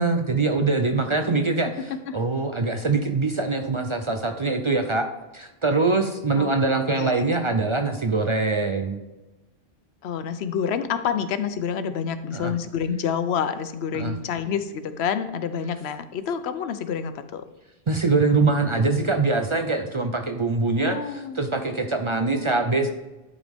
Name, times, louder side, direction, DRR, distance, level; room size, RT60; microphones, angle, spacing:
voice 1, 0.0-1.7 2.1-5.1 5.3-9.0 12.3-12.5 13.9-14.1 17.9-22.9, right 3 dB, 40° right, 6 dB, 0.4 m, -23 dB
voice 2, 1.3-1.7 2.1-2.2 6.4-6.5 7.0-7.2 10.0-17.4 20.8-21.4, left 7 dB, 85° left, 11 dB, 0.9 m, -28 dB
11.0 x 5.1 x 3.5 m, 1.1 s
omnidirectional pair, 1.1 m